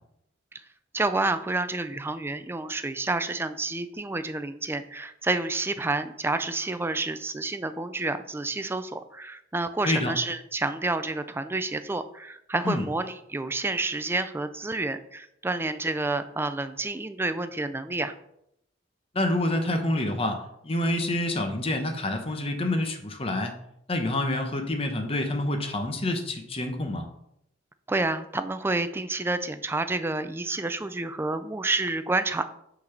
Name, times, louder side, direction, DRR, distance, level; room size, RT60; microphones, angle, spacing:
voice 1, 0.9-18.1 27.9-32.4, right 2 dB, 10° right, 10 dB, 0.4 m, -29 dB
voice 2, 19.1-23.5 23.9-27.0, left 1 dB, 30° left, 5 dB, 0.9 m, -27 dB
5.8 x 4.0 x 5.8 m, 0.77 s
head